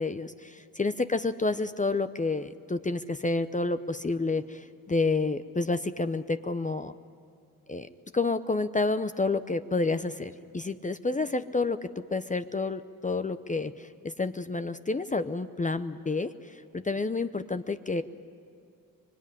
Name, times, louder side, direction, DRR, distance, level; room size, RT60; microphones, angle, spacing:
voice 1, 0.0-6.9 7.7-18.0, left 3 dB, 20° left, 10 dB, 0.7 m, -29 dB
24.5 x 22.5 x 9.8 m, 2.4 s
cardioid pair, 90°, 37 cm